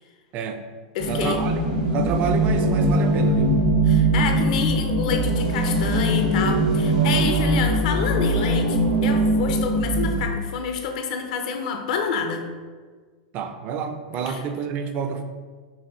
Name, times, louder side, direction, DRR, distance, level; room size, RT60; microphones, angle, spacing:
voice 1, 0.3-0.7 1.1-1.6 1.9-3.6 13.3-15.2, right 6 dB, 40° right, 7 dB, 0.4 m, -29 dB
voice 2, 0.9-1.4 3.8-12.5 14.3-14.4, left 6 dB, 65° left, 5 dB, 0.6 m, -28 dB
sound 1, 1.0-10.2, right 1 dB, 85° right, 1.2 m, -21 dB
5.7 x 2.6 x 3.0 m, 1.5 s
hypercardioid pair, 115°, 4 cm